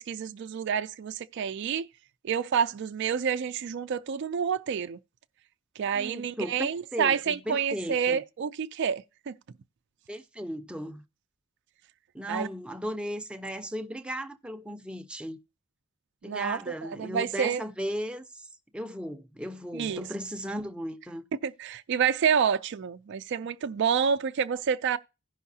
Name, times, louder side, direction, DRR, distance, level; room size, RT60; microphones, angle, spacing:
voice 1, 0.0-1.9 2.2-5.0 5.8-9.3 12.3-12.5 16.2-17.6 19.7-20.0 21.4-25.0, right 7 dB, 60° right, 0.4 m, -28 dB
voice 2, 5.9-8.2 10.1-11.0 12.1-15.4 16.2-18.5 18.7-21.2, equal, 5° right, 0.6 m, -36 dB
16.0 x 5.6 x 2.7 m
head